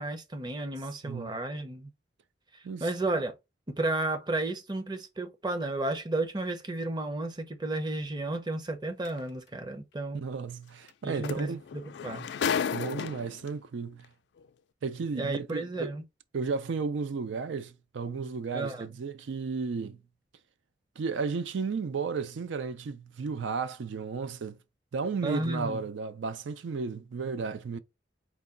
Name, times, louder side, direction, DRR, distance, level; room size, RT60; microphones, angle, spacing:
voice 1, 0.0-1.9 2.5-3.3 3.7-10.2 11.0-12.3 15.1-16.0 18.5-18.9 25.2-25.8, right 2 dB, 25° right, 0.6 m, -33 dB
voice 2, 1.0-1.4 2.6-2.9 10.1-11.6 12.7-14.1 14.8-15.9 16.3-20.0 21.0-24.6 24.9-27.8, right 5 dB, 85° right, 0.4 m, -33 dB
sound 1, 9.1-9.2 10.9-11.0 11.2-13.5 14.4-14.5, left 7 dB, 65° left, 0.3 m, -32 dB
4.7 x 2.3 x 3.7 m
head